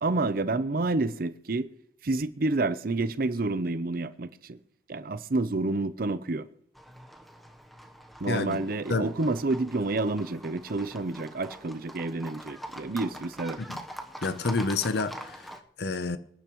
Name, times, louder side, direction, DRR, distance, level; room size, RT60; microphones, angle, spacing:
voice 1, 0.0-1.7 2.0-4.6 4.9-6.5 8.2-13.6, right 2 dB, 55° right, 0.6 m, -29 dB
Livestock farm animals working animals, 6.8-15.6, equal, ahead, 1.0 m, -44 dB
voice 2, 8.3-8.6 8.9-9.1 13.6-13.8 14.2-16.2, left 3 dB, 65° left, 0.7 m, -29 dB
25.0 x 10.5 x 3.1 m
head